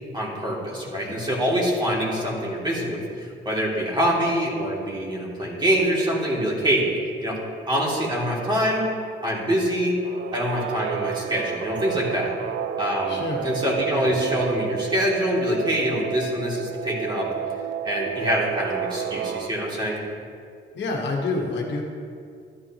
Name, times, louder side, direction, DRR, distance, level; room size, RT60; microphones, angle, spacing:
voice 1, 0.1-6.8 7.2-7.4 7.7-8.8 9.2-9.9 10.3-12.3 12.8-13.2 13.4-17.3 17.8-20.0, equal, 20° right, -4 dB, 2.8 m, -25 dB
voice 2, 0.9-1.2 13.0-13.5 13.9-14.1 20.7-21.8, left 3 dB, 65° left, 0 dB, 1.5 m, -28 dB
Guitar, 10.0-19.5, right 10 dB, 70° right, 0.5 m, -31 dB
12.5 x 9.8 x 3.0 m, 2.3 s
cardioid pair, 90°, 20 cm